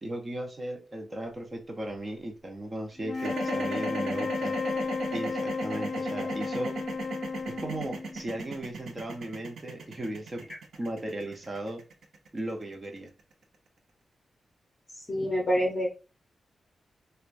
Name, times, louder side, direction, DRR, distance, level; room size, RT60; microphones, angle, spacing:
voice 1, 0.0-4.6 5.1-6.8 7.5-10.5 10.8-11.8 12.3-13.1, right 1 dB, 25° right, 3 dB, 0.7 m, -36 dB
sound 1, 3.0-8.4, left 4 dB, 55° left, 0.6 m, -33 dB
sound 2, 3.1-13.3, right 3 dB, 75° right, 0.8 m, -36 dB
voice 2, 15.0-15.9, equal, 30° left, -1 dB, 0.8 m, -27 dB
4.6 x 2.2 x 2.5 m, 0.31 s
wide cardioid pair, 145°, 0 cm